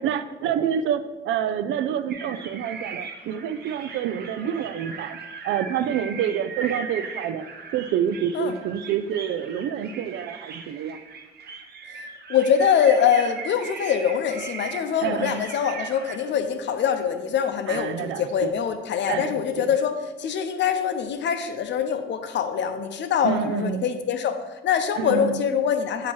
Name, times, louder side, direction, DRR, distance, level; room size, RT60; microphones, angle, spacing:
voice 1, 0.0-5.2 5.4-7.5 7.7-11.0 15.0-15.4 17.7-18.5 19.1-19.7 23.2-23.8 25.0-25.4, right 9 dB, 75° right, 13 dB, 0.4 m, -27 dB
sound 1, 2.1-16.2, right 5 dB, 55° right, 0.7 m, -38 dB
voice 2, 12.0-26.1, left 8 dB, 65° left, 8 dB, 0.6 m, -24 dB
8.4 x 2.9 x 4.5 m, 1.2 s
cardioid pair, 90°, 20 cm